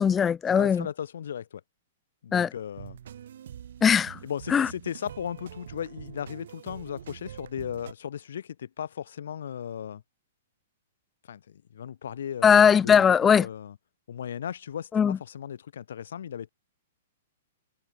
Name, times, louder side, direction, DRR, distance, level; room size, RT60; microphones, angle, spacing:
voice 1, 0.0-0.9 2.3-2.5 3.8-4.2 4.5-4.7 12.4-13.5 14.9-15.2, left 7 dB, 15° left, 0.7 m, -20 dB
voice 2, 0.5-1.6 2.2-3.0 4.2-10.0 11.3-13.0 13.4-13.7 14.1-16.5, left 9 dB, 75° left, 4.3 m, -36 dB
sound 1, 2.7-7.9, right 10 dB, 70° right, 7.4 m, -45 dB
hypercardioid pair, 130°, 0 cm